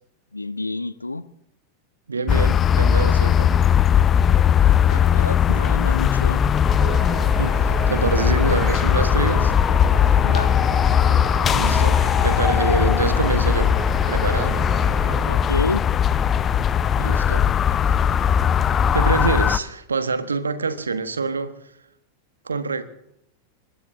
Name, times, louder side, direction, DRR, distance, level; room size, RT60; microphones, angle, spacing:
voice 1, 0.3-1.2 4.8-6.4 10.2-10.5 15.3-15.8, left 2 dB, 80° left, 17 dB, 0.7 m, -29 dB
voice 2, 2.1-3.5 7.4-9.5 11.4-13.7 14.1-14.6 17.0-17.5 17.8-17.9 18.9-21.6 22.4-22.8, right 4 dB, 75° right, 11 dB, 1.2 m, -26 dB
sound 1, 2.3-19.6, left 8 dB, 25° left, 0.6 m, -19 dB
sound 2, 6.7-15.2, right 4 dB, 25° right, 5.9 m, -32 dB
25.5 x 20.5 x 2.7 m, 0.80 s
figure-of-eight pair, 90°, 0 cm